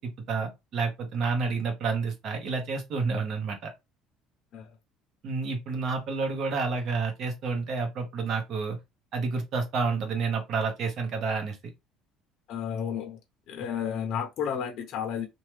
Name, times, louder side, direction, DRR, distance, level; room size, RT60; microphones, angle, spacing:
voice 1, 0.0-3.7 5.2-8.8 9.1-11.6, right 4 dB, 50° right, 1.0 m, -29 dB
voice 2, 12.5-13.2 13.5-15.3, left 8 dB, 55° left, 0.6 m, -32 dB
2.8 x 2.3 x 3.1 m
cardioid pair, 145°, 0 cm